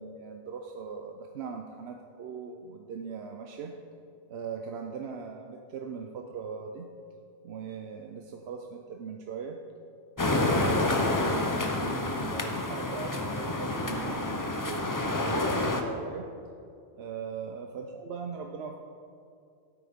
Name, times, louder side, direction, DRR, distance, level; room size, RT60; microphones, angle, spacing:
voice 1, 0.0-3.7 4.3-6.9 7.4-9.6 10.2-11.5 11.8-16.3 16.9-18.7, right 6 dB, 70° right, 3 dB, 0.9 m, -40 dB
sound 1, 10.2-15.8, left 2 dB, 20° left, 0.6 m, -28 dB
13.0 x 8.4 x 3.6 m, 2.4 s
omnidirectional pair, 1.1 m